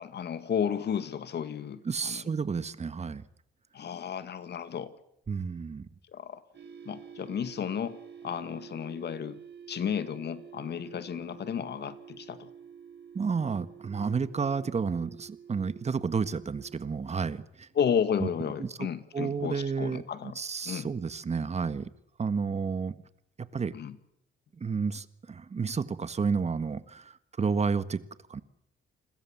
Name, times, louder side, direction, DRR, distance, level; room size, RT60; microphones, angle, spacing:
voice 1, 0.0-2.2 3.7-4.9 6.1-6.4 6.9-9.4 9.7-12.5 17.8-20.4 20.6-20.9 23.7-24.0, left 8 dB, 55° left, 12 dB, 2.0 m, -33 dB
voice 2, 1.8-3.2 5.3-5.9 13.1-17.7 18.2-18.3 18.6-18.9 19.1-21.9 22.2-23.0 23.4-23.7 24.6-28.0 28.3-28.4, right 5 dB, 35° right, 13 dB, 1.6 m, -31 dB
sound 1, 6.5-16.8, right 7 dB, 60° right, 7.3 m, -49 dB
29.0 x 21.5 x 7.3 m, 0.77 s
cardioid pair, 90°, 20 cm